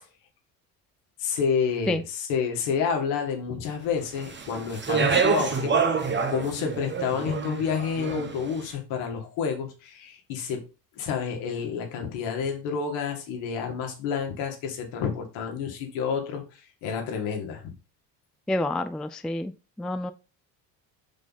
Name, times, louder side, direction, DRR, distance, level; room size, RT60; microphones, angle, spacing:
voice 1, 1.2-10.6 11.0-17.7, left 6 dB, 70° left, 3 dB, 2.2 m, -29 dB
Speech, 4.2-8.5, right 5 dB, 20° right, 1.2 m, -27 dB
voice 2, 18.5-19.5 19.8-20.1, left 1 dB, ahead, 11 dB, 0.4 m, -28 dB
5.7 x 4.8 x 4.1 m, 0.31 s
hypercardioid pair, 70°, 49 cm